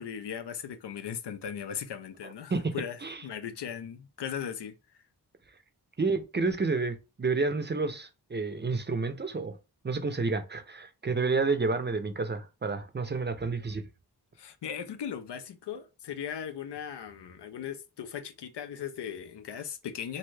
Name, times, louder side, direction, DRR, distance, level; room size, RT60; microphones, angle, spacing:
voice 1, 0.0-4.7 14.4-20.2, left 8 dB, 85° left, 0.5 m, -38 dB
voice 2, 2.2-2.7 3.0-3.2 6.0-9.6 9.8-13.8, right 4 dB, 25° right, 0.5 m, -30 dB
2.6 x 2.3 x 3.1 m
cardioid pair, 45°, 41 cm